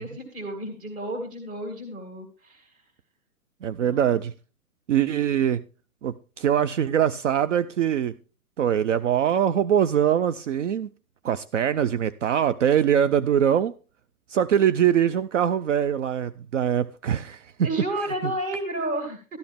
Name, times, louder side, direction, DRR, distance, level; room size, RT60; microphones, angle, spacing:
voice 1, 0.0-2.7 3.8-4.2 17.6-19.2, right 1 dB, 20° right, 2.2 m, -31 dB
voice 2, 3.6-4.3 4.9-5.6 6.0-8.1 8.6-10.9 11.2-13.7 14.3-17.7, right 9 dB, 55° right, 0.6 m, -23 dB
13.0 x 10.0 x 3.5 m
hypercardioid pair, 135°, 44 cm